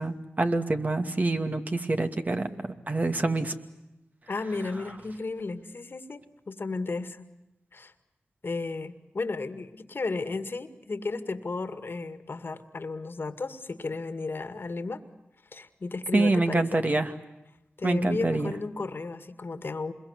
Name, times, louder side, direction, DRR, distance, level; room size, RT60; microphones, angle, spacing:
voice 1, 0.0-3.5 16.1-17.1 17.8-18.5, right 2 dB, 40° right, 6 dB, 2.4 m, -26 dB
voice 2, 4.3-7.3 7.7-7.9 8.4-15.0 15.5-16.8 17.8-19.9, left 3 dB, 55° left, 10 dB, 2.0 m, -34 dB
27.0 x 22.5 x 9.6 m, 0.93 s
cardioid pair, 45°, 4 cm